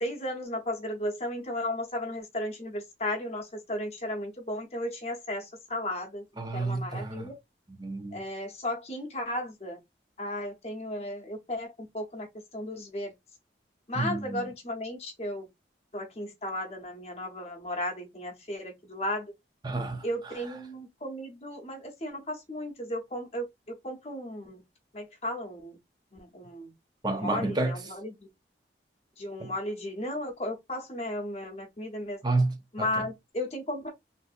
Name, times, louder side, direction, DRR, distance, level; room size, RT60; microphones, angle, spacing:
voice 1, 0.0-6.2 6.5-7.3 8.1-9.8 10.2-12.3 12.5-13.1 13.9-15.5 15.9-19.3 20.0-24.6 24.9-25.8 26.1-26.7 27.1-28.3 29.2-32.2 32.7-33.9, left 1 dB, 35° left, 0.9 m, -35 dB
voice 2, 6.4-7.3 7.7-8.2 14.0-14.5 19.6-20.5 27.0-27.8 29.4-29.5 32.2-33.0, right 2 dB, 25° right, 0.6 m, -30 dB
3.3 x 2.6 x 2.4 m
head